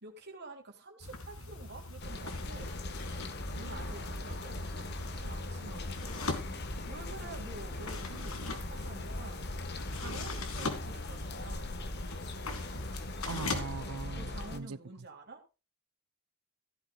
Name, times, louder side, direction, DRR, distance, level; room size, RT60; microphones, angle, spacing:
voice 1, 0.0-2.8 3.5-6.3 6.9-9.4 9.9-11.8 14.1-15.4, right 2 dB, 50° right, 3.6 m, -49 dB
sound 1, 1.0-13.6, left 3 dB, 70° left, 2.7 m, -41 dB
sound 2, 2.0-14.6, left 2 dB, 50° left, 1.6 m, -40 dB
voice 2, 3.4-4.0 13.3-14.8, right 4 dB, 70° right, 0.8 m, -41 dB
16.0 x 12.0 x 2.5 m
head